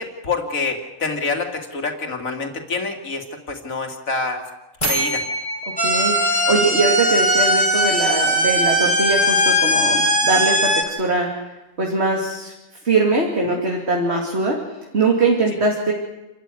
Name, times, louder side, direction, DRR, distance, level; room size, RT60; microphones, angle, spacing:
voice 1, 0.0-4.4 4.8-5.2 13.5-13.6, left 3 dB, 70° left, 4 dB, 3.0 m, -26 dB
sound 1, 4.8-7.6, right 1 dB, 25° left, 4.5 m, -28 dB
sound 2, 5.8-10.8, equal, 5° left, 4.0 m, -19 dB
voice 2, 5.8-12.5 12.8-14.6 14.9-15.9, right 3 dB, 50° right, 0 dB, 3.1 m, -21 dB
28.5 x 13.5 x 9.6 m, 1.0 s
omnidirectional pair, 1.5 m